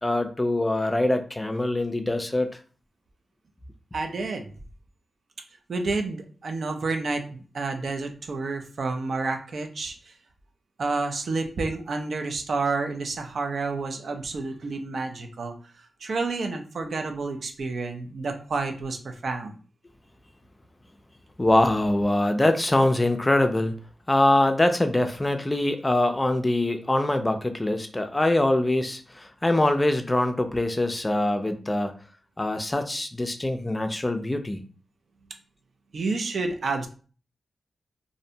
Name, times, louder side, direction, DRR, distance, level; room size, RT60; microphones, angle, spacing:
voice 1, 0.0-2.6 21.4-23.7 24.1-31.9 32.4-34.6, left 1 dB, 20° left, 7 dB, 0.3 m, -23 dB
voice 2, 3.9-4.5 5.7-10.0 10.8-15.5 16.0-19.6 35.9-36.9, right 3 dB, 70° right, 5 dB, 0.4 m, -29 dB
2.5 x 2.1 x 2.7 m, 0.39 s
cardioid pair, 65°, 0 cm